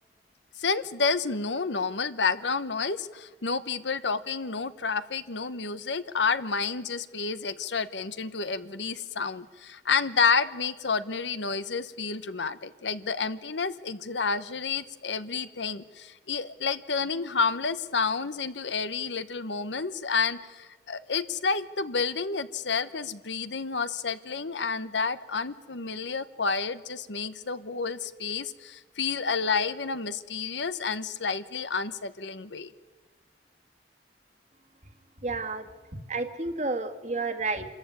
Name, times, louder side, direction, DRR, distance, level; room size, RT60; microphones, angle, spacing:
voice 1, 0.6-32.7, left 5 dB, 80° left, 13 dB, 1.1 m, -30 dB
voice 2, 35.2-35.7 36.1-37.7, right 3 dB, 40° right, 7 dB, 1.9 m, -30 dB
26.5 x 14.5 x 9.7 m, 1.3 s
head